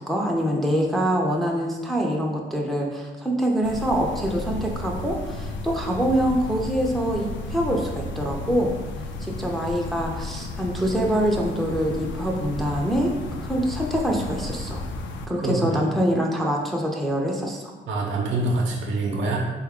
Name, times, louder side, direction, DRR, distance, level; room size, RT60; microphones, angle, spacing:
voice 1, 0.1-8.7 9.2-13.1 13.4-14.8 15.3-17.7, equal, ahead, -1 dB, 0.5 m, -25 dB
sound 1, 3.6-15.3, left 2 dB, 70° left, 0.5 m, -33 dB
voice 2, 15.4-15.8 17.9-19.4, right 2 dB, 70° right, -1 dB, 0.7 m, -25 dB
3.9 x 2.3 x 3.5 m, 1.2 s
cardioid pair, 90°, 20 cm